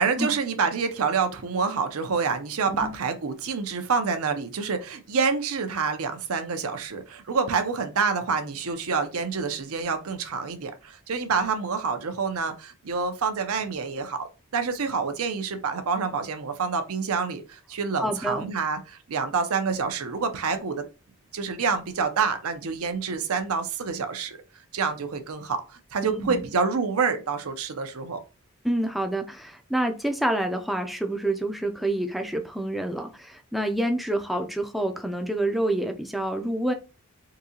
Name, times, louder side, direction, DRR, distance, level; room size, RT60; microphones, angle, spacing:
voice 1, 0.0-14.3 14.5-20.8 21.3-24.4 24.7-28.2, right 5 dB, 80° right, 0.6 m, -27 dB
voice 2, 18.0-18.4 26.0-26.4 28.6-36.7, right 1 dB, ahead, 0.4 m, -27 dB
3.8 x 2.7 x 2.8 m
head